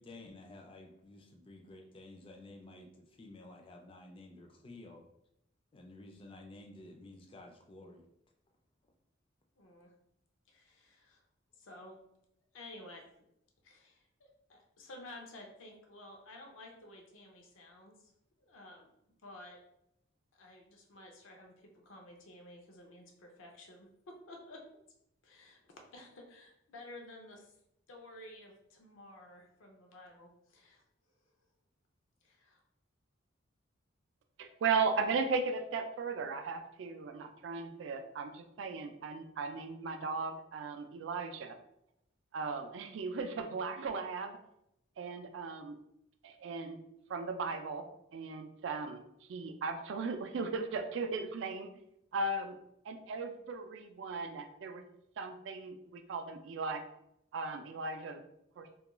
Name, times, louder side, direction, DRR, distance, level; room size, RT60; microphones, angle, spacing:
voice 1, 0.0-5.1 5.7-8.0, left 2 dB, 25° left, 3 dB, 0.3 m, -52 dB
voice 2, 9.6-9.9 10.5-11.2 11.6-12.0 12.5-13.2 13.6-18.1 18.4-18.9 19.2-19.6 20.3-24.6 25.2-25.6 25.9-27.5 27.9-30.8 32.2-32.6, left 1 dB, 85° left, 2 dB, 0.5 m, -53 dB
voice 3, 34.4-41.6 42.3-44.4 45.0-45.8 46.2-46.8 47.1-47.8 48.1-49.0 49.3-51.7 52.1-52.5 52.9-54.8 55.2-56.8 57.3-58.2 58.6-58.7, right 4 dB, 65° right, 8 dB, 0.3 m, -36 dB
2.3 x 2.2 x 2.9 m, 0.80 s
head